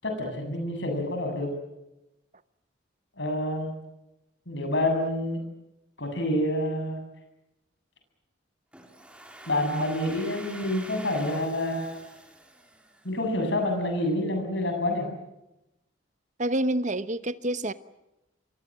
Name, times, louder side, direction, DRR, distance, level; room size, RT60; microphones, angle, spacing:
voice 1, 0.0-1.5 3.2-3.7 4.5-5.4 6.0-7.0 9.4-12.0 13.0-15.1, left 1 dB, 65° left, 7.7 m, -28 dB
Domestic sounds home sounds, 8.7-13.5, right 1 dB, 5° right, 3.6 m, -46 dB
voice 2, 16.4-17.7, right 1 dB, 40° right, 1.0 m, -28 dB
28.5 x 23.5 x 7.6 m
head